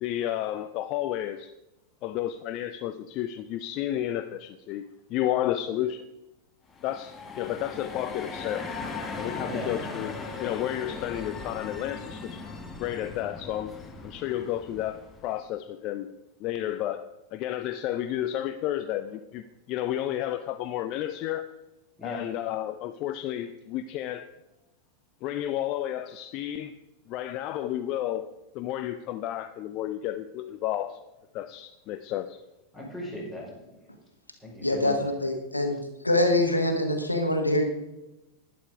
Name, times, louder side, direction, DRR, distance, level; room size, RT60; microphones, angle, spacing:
voice 1, 0.0-1.5 2.0-6.0 6.8-8.7 9.2-10.1 10.4-12.4 12.8-13.7 14.0-16.1 16.4-17.0 17.3-19.4 19.7-21.5 22.0-24.3 25.2-26.7 27.1-28.3 28.5-31.0 31.3-32.4, left 12 dB, 40° left, 11 dB, 0.5 m, -31 dB
sound 1, 6.7-15.4, left 4 dB, 20° left, 1.6 m, -38 dB
voice 2, 9.4-9.7 22.0-22.2 32.7-33.8 34.4-34.9, left 1 dB, 5° right, -3 dB, 5.2 m, -38 dB
voice 3, 34.6-35.8 36.0-37.6, left 1 dB, 85° left, 5 dB, 1.4 m, -24 dB
11.5 x 10.5 x 5.0 m, 0.97 s
figure-of-eight pair, 90°, 0 cm